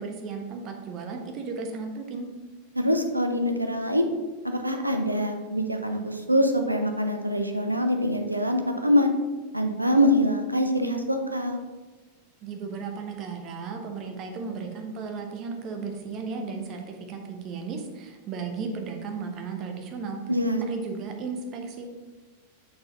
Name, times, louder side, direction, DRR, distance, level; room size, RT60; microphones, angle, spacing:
voice 1, 0.0-2.3 12.4-20.2 20.6-21.9, right 4 dB, 35° right, 4 dB, 0.9 m, -35 dB
voice 2, 2.7-4.1 4.4-9.1 9.5-11.6 20.3-20.6, equal, 85° right, 5 dB, 0.6 m, -24 dB
6.8 x 4.1 x 3.9 m, 1.3 s
figure-of-eight pair, 90°, 0 cm